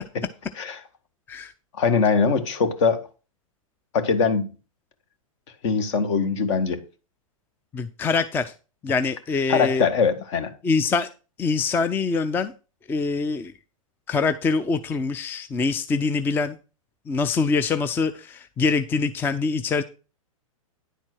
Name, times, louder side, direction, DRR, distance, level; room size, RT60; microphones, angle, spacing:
voice 1, 1.8-3.0 3.9-4.5 5.6-6.8 9.5-10.5, left 5 dB, 55° left, 1.8 m, -22 dB
voice 2, 7.7-8.5 8.8-9.9 10.6-11.1 11.4-12.5 12.9-13.5 14.1-16.6 17.1-19.8, left 4 dB, 10° left, 0.4 m, -24 dB
10.0 x 4.4 x 6.2 m
hypercardioid pair, 130°, 18 cm